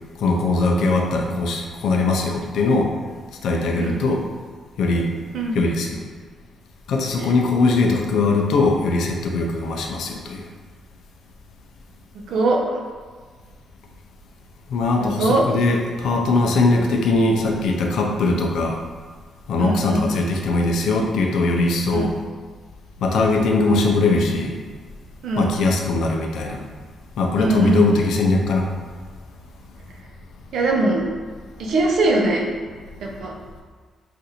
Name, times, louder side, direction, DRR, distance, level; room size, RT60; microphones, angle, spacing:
voice 1, 0.2-2.9 3.4-4.2 4.8-5.1 5.5-6.0 6.9-10.5 14.7-18.8 19.5-22.1 23.0-24.5 25.4-26.6 27.2-28.7, left 3 dB, 85° left, 1 dB, 0.4 m, -20 dB
voice 2, 12.3-12.6 15.0-15.4 16.8-16.9 19.6-20.1 21.9-22.1 25.2-25.6 27.4-27.9 30.5-31.0 31.6-32.5 33.0-33.3, right 2 dB, 70° right, -1 dB, 0.5 m, -21 dB
2.5 x 2.5 x 4.2 m, 1.5 s
wide cardioid pair, 175°, 0 cm